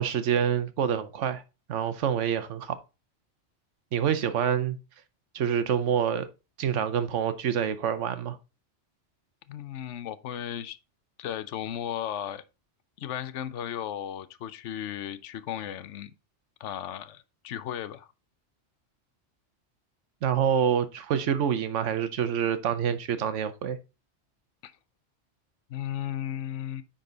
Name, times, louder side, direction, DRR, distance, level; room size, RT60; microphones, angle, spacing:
voice 1, 0.0-1.4 1.7-2.7 3.9-4.8 5.3-6.3 6.6-8.4 20.2-23.8, right 8 dB, 90° right, 1.1 m, -26 dB
voice 2, 9.5-10.8 11.2-12.4 13.0-16.1 16.6-18.1 24.6-24.7 25.7-26.8, left 10 dB, 80° left, 1.0 m, -35 dB
10.0 x 3.9 x 3.9 m
omnidirectional pair, 1.2 m